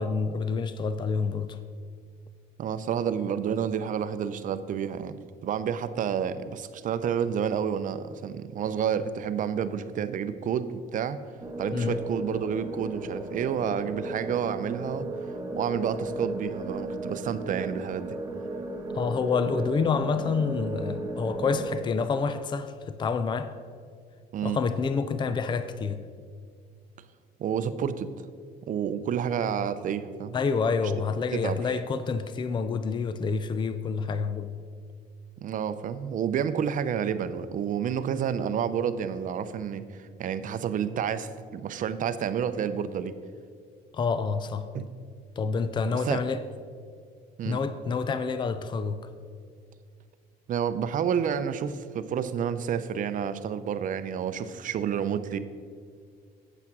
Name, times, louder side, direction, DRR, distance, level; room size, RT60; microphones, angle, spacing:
voice 1, 0.0-1.6 11.7-12.0 18.9-23.5 24.4-26.0 30.3-34.6 43.9-44.7 45.4-46.4 47.4-49.1, left 5 dB, 25° left, 0.5 m, -28 dB
voice 2, 2.6-5.2 5.4-11.2 11.6-15.1 15.6-18.2 24.3-24.6 27.4-28.3 28.7-30.4 31.3-31.6 35.4-43.1 44.7-44.9 46.1-46.2 47.4-47.6 50.5-55.4, right 8 dB, 50° right, 0.6 m, -29 dB
sound 1, 11.4-21.8, right 2 dB, 20° right, 1.3 m, -35 dB
8.4 x 7.9 x 6.0 m
cardioid pair, 110°, 17 cm